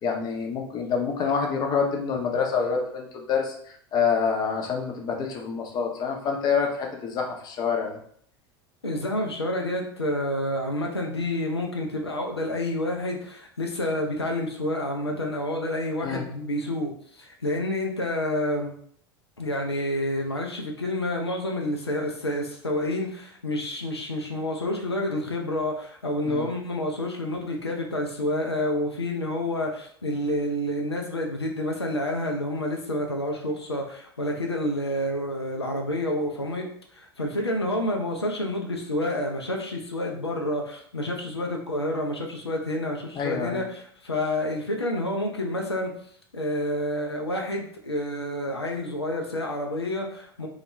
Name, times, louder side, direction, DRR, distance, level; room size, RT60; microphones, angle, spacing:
voice 1, 0.0-8.0 16.0-16.2 26.3-26.5 43.2-43.6, left 6 dB, 30° left, 1 dB, 0.5 m, -27 dB
voice 2, 8.8-18.7 19.4-36.7 36.9-45.9 46.3-50.5, left 1 dB, 90° left, 1 dB, 0.4 m, -29 dB
2.3 x 2.0 x 3.1 m, 0.63 s
figure-of-eight pair, 80°, 13 cm